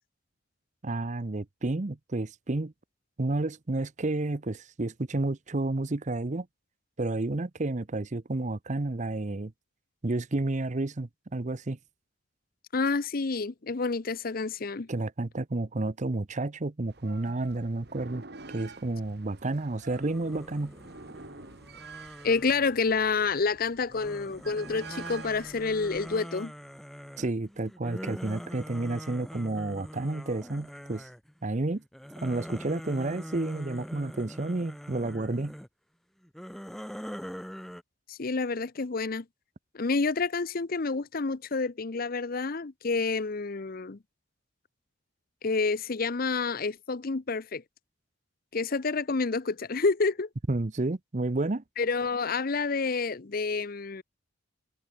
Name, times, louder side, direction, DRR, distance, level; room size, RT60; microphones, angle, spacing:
voice 1, 0.8-2.7 3.2-6.5 7.0-9.5 10.0-11.8 14.9-18.2 18.5-20.7 27.2-31.1 31.4-31.8 32.2-35.5 50.5-51.6, right 2 dB, 40° right, 0.7 m, -31 dB
voice 2, 12.7-14.9 22.2-26.5 38.1-39.2 39.7-44.0 45.4-47.6 48.5-50.3 51.8-54.0, left 4 dB, 50° left, 0.7 m, -29 dB
sound 1, 16.9-26.2, right 4 dB, 55° right, 2.8 m, -48 dB
sound 2, 19.9-23.3 23.9-31.4 31.8-35.7 36.2-37.8, equal, ahead, 1.2 m, -43 dB
head